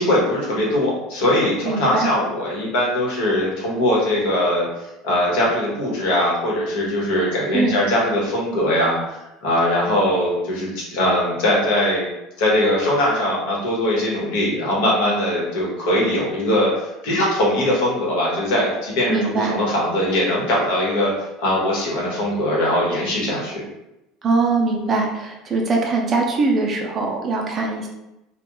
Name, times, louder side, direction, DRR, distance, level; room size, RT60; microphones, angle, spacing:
voice 1, 0.0-12.1 12.4-21.1 21.4-23.6, left 1 dB, 80° left, -4 dB, 1.1 m, -21 dB
voice 2, 1.6-2.1 7.5-7.8 19.1-19.6 24.2-27.9, right 3 dB, 30° right, 0 dB, 0.5 m, -21 dB
2.3 x 2.2 x 3.0 m, 0.92 s
supercardioid pair, 130°, 0 cm